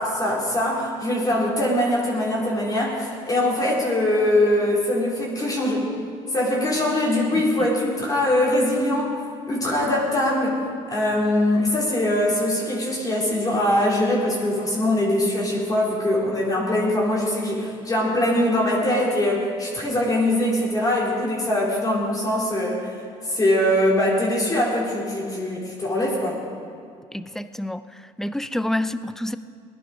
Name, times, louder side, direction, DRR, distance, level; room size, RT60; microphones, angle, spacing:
voice 1, 0.0-5.9 6.3-9.2 9.5-10.6 10.9-23.0 23.2-26.4, left 1 dB, 25° left, -5 dB, 3.8 m, -22 dB
voice 2, 27.1-29.4, left 1 dB, 5° left, 12 dB, 0.6 m, -28 dB
19.0 x 11.0 x 5.1 m, 2.3 s
supercardioid pair, 90°, 13 cm